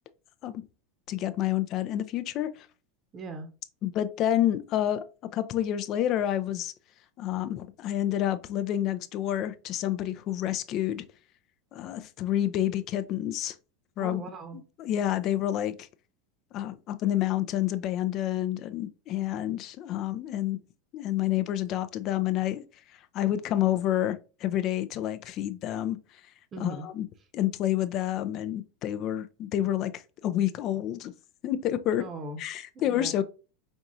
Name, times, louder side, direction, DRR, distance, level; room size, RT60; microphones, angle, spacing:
voice 1, 1.1-2.7 3.8-5.1 5.3-6.7 7.2-11.0 11.7-13.5 14.0-14.2 14.8-15.9 16.5-20.6 20.9-22.6 23.1-26.0 26.6-27.1 27.3-31.1 31.4-32.1 32.4-33.2, left 12 dB, 40° left, 0.4 m, -29 dB
voice 2, 3.1-3.5 14.0-14.6 26.5-26.9 31.9-32.4 32.7-33.2, right 3 dB, 30° right, 0.8 m, -39 dB
4.7 x 3.5 x 2.7 m
figure-of-eight pair, 85°, 0 cm